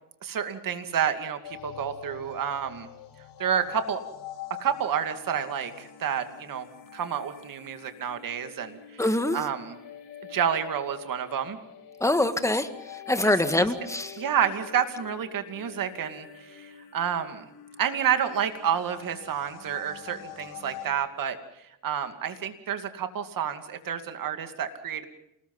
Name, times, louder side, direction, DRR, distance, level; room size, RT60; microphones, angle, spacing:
voice 1, 0.2-2.9 3.4-4.0 4.6-6.7 6.9-9.0 9.3-9.8 10.3-11.6 13.2-13.3 14.2-17.5 17.8-21.4 21.8-25.1, right 8 dB, 55° right, 8 dB, 2.5 m, -29 dB
sound 1, 1.4-20.9, left 10 dB, 85° left, 5.1 m, -46 dB
voice 2, 9.0-9.4 12.0-14.2, left 1 dB, 5° left, 9 dB, 1.8 m, -25 dB
28.0 x 20.0 x 5.5 m, 0.82 s
cardioid pair, 100°, 39 cm